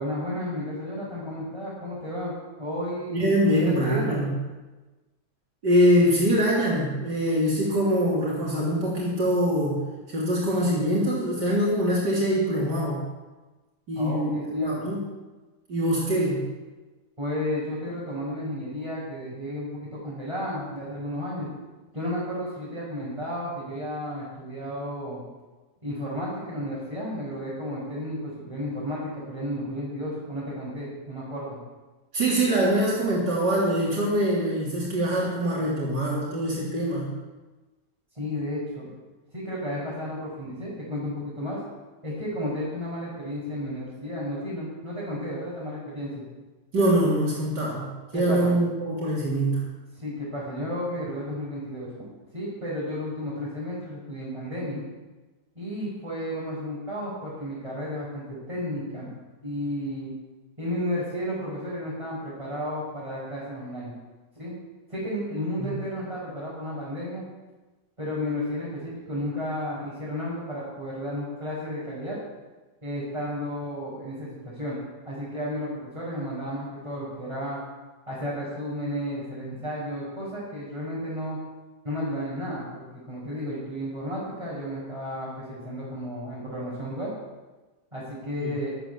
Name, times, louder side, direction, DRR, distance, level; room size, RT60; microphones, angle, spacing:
voice 1, 0.0-4.2 14.0-14.8 17.2-21.5 21.9-25.2 25.8-31.6 38.1-38.9 39.3-41.6 42.0-46.2 48.1-48.5 49.9-52.1 52.3-54.8 55.6-59.1 59.4-60.1 60.6-63.9 64.3-64.5 64.9-67.2 68.0-72.2 72.8-74.8 75.0-77.6 78.1-81.4 81.8-87.1 87.9-88.7, equal, 15° right, -9 dB, 6.0 m, -32 dB
voice 2, 3.1-4.3 5.6-13.1 13.9-15.0 15.7-16.5 32.1-37.1 46.7-49.7 65.6-65.7 88.4-88.5, equal, 70° right, -6 dB, 3.9 m, -24 dB
13.0 x 12.5 x 7.1 m, 1.2 s
omnidirectional pair, 1.8 m